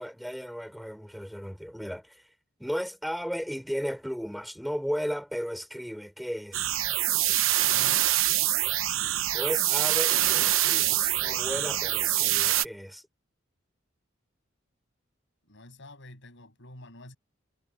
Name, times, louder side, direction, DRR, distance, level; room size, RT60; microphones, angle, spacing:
voice 1, 0.0-2.2 2.6-6.6 9.3-13.0, equal, ahead, 6.0 m, -35 dB
sound 1, 6.5-12.7, right 13 dB, 80° right, 1.0 m, -25 dB
voice 2, 7.6-8.1 15.5-17.2, left 1 dB, 65° left, 7.8 m, -47 dB
head